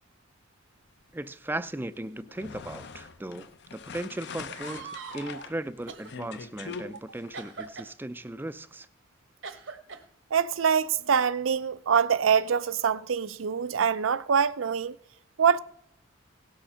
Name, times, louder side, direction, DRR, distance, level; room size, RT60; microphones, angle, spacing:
voice 1, 1.1-8.9, right 1 dB, 10° right, 0.4 m, -37 dB
sound 1, 2.2-7.7, left 5 dB, 60° left, 0.7 m, -43 dB
sound 2, 4.5-5.5 5.9-6.1 7.3-7.9 9.4-10.0 11.0-11.2 12.1-13.3, right 5 dB, 65° right, 1.1 m, -43 dB
voice 2, 10.3-15.0 15.4-15.6, right 7 dB, 85° right, 0.5 m, -24 dB
17.5 x 6.5 x 5.6 m
head